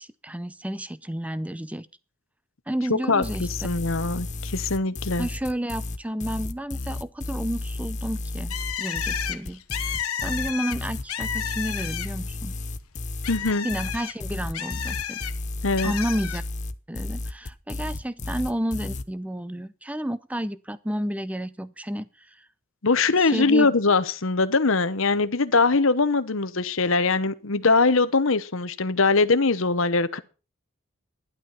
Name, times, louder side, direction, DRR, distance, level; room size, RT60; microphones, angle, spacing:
voice 1, 0.0-1.9 2.7-3.5 5.2-12.5 13.6-15.2 15.8-16.4 16.9-22.3 23.2-23.7, equal, 5° right, 0.6 m, -31 dB
voice 2, 3.1-5.3 13.3-13.7 15.6-15.9 22.8-30.2, left 3 dB, 70° left, 1.0 m, -22 dB
sound 1, 3.2-19.0, left 2 dB, 35° left, 0.8 m, -33 dB
Bird, 8.5-12.3 12.7-15.3 15.8-16.4, left 9 dB, 85° left, 1.2 m, -32 dB
12.5 x 11.0 x 5.7 m
head